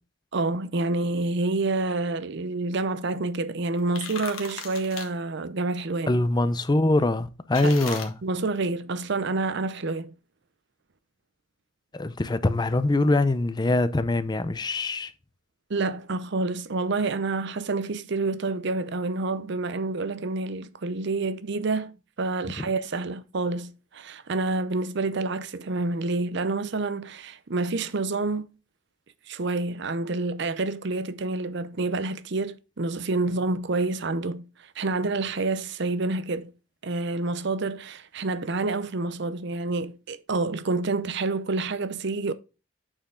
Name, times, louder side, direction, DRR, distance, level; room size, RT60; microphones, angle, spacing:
voice 1, 0.3-6.2 7.6-10.1 15.7-28.5 29.3-36.5 36.8-42.3, right 3 dB, 55° right, 0.6 m, -28 dB
sound 1, 3.8-5.1 7.5-8.1, left 6 dB, 80° left, 1.5 m, -37 dB
voice 2, 6.1-8.1 11.9-15.1, left 2 dB, 20° left, 0.5 m, -23 dB
8.7 x 4.6 x 3.6 m
head